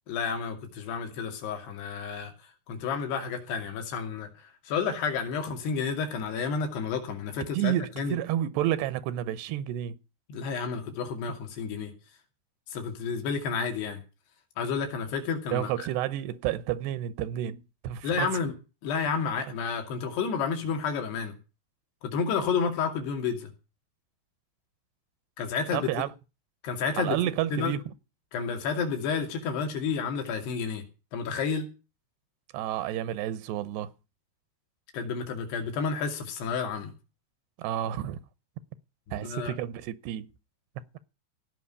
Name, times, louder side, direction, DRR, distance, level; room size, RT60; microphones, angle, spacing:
voice 1, 0.1-8.2 10.3-11.9 12.7-14.0 14.6-15.9 18.0-18.5 18.8-21.4 22.0-23.5 25.4-25.9 26.6-27.2 27.5-27.7 28.3-30.8 31.1-31.7 34.9-36.9 39.1-39.5, left 6 dB, 75° left, 4.7 m, -31 dB
voice 2, 7.5-10.0 15.5-18.3 25.7-26.1 27.0-27.9 32.5-33.9 37.6-38.2 39.1-40.3, right 12 dB, 85° right, 3.0 m, -30 dB
17.0 x 6.0 x 9.8 m
omnidirectional pair, 4.8 m